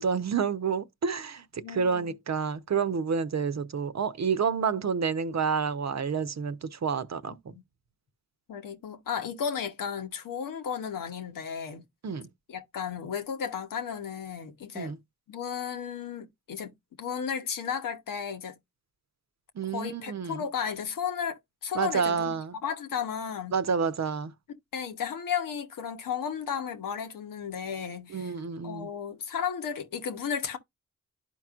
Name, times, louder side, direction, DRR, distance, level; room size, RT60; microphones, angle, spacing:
voice 1, 0.0-7.4 12.0-12.3 14.7-15.0 19.6-20.4 21.7-22.5 23.5-24.3 28.1-28.9, right 6 dB, 55° right, 0.8 m, -29 dB
voice 2, 1.6-2.2 7.3-7.6 8.5-11.8 12.5-15.0 15.3-18.6 19.7-22.4 22.6-23.6 24.7-28.4 28.6-30.6, left 7 dB, 85° left, 1.1 m, -34 dB
11.5 x 4.6 x 2.4 m
supercardioid pair, 40°, 32 cm